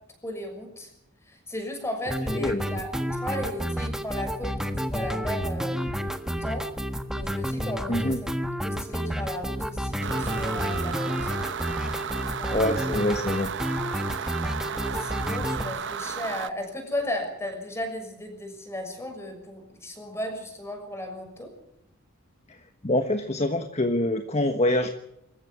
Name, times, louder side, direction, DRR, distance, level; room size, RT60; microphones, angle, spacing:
voice 1, 0.2-0.9 1.3-5.8 6.3-6.7 7.2-11.3 12.4-13.1 14.7-21.5, left 1 dB, 15° left, 5 dB, 6.4 m, -35 dB
sound 1, 2.1-15.6, equal, 5° right, 1.4 m, -30 dB
voice 2, 2.3-2.6 7.9-8.2 12.5-13.5 22.5-22.6 22.8-24.9, left 1 dB, 30° left, 7 dB, 1.4 m, -25 dB
sound 2, 10.0-16.5, right 6 dB, 60° right, 0.9 m, -34 dB
26.0 x 14.5 x 8.5 m, 0.79 s
head